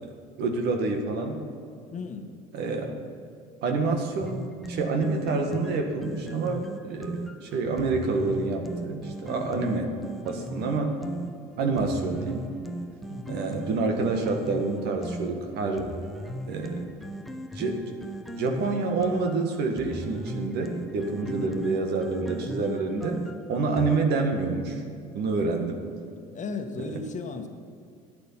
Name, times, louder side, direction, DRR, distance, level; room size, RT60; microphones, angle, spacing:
voice 1, 0.0-1.4 2.5-2.9 3.6-9.9 10.2-11.0 11.6-12.4 13.3-15.9 16.5-16.8 17.5-17.8 18.4-23.2 23.5-24.8 25.1-25.8 26.8-27.0, right 3 dB, 60° right, 3 dB, 1.7 m, -27 dB
voice 2, 1.9-2.3 13.1-13.4 21.2-21.6 26.3-27.5, left 4 dB, 40° left, 6 dB, 1.4 m, -36 dB
sound 1, 4.2-24.0, right 1 dB, ahead, 0.9 m, -38 dB
12.0 x 9.4 x 5.8 m, 2.3 s
hypercardioid pair, 75°, 20 cm